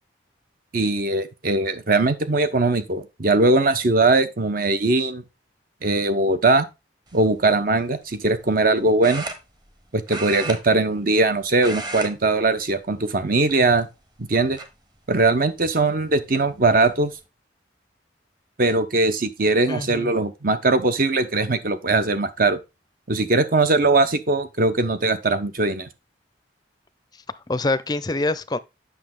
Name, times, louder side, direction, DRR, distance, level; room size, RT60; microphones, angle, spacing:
voice 1, 0.7-5.2 5.8-6.7 7.1-9.3 9.9-13.9 14.2-14.6 15.1-17.1 18.6-22.6 23.1-25.9, right 2 dB, 50° right, 0.9 m, -20 dB
sound 1, 7.1-7.4 9.0-9.8 10.1-11.3 11.5-12.1 12.4-12.7 13.4-14.0 14.6-14.7 16.1-16.2 16.5-16.9, right 3 dB, 25° right, 1.2 m, -33 dB
voice 2, 19.7-20.1 27.5-28.6, left 2 dB, 20° left, 0.5 m, -25 dB
8.4 x 6.2 x 3.7 m
head